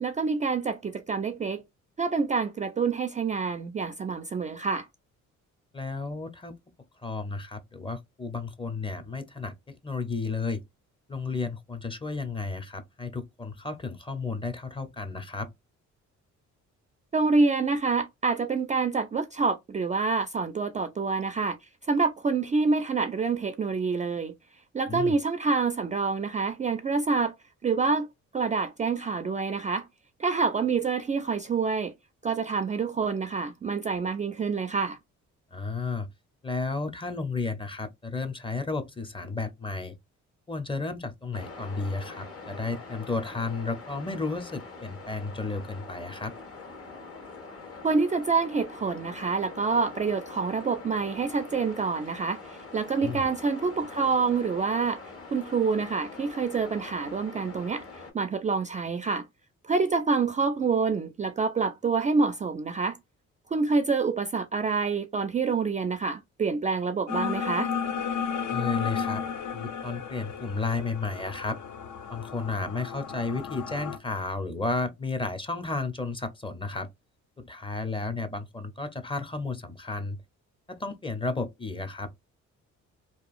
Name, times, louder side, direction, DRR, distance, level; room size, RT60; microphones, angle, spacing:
voice 1, 0.0-1.6 2.0-4.9 17.1-21.6 21.9-24.3 24.7-27.3 27.6-28.1 28.3-29.9 30.2-31.9 32.2-35.0 47.8-55.0 55.3-59.3 59.6-63.0 63.5-67.7, right 4 dB, 25° right, 0.3 m, -27 dB
voice 2, 5.7-6.5 7.0-10.6 11.1-15.5 24.9-25.2 35.5-36.1 36.4-40.0 40.5-46.3 53.0-53.3 68.5-69.2 69.5-71.6 72.1-76.9 77.4-80.2 80.7-82.2, left 3 dB, 15° left, 0.6 m, -33 dB
sound 1, 41.3-58.1, left 3 dB, 50° left, 1.4 m, -44 dB
sound 2, 67.1-74.0, left 7 dB, 75° left, 0.6 m, -33 dB
2.9 x 2.4 x 2.4 m
cardioid pair, 90°, 30 cm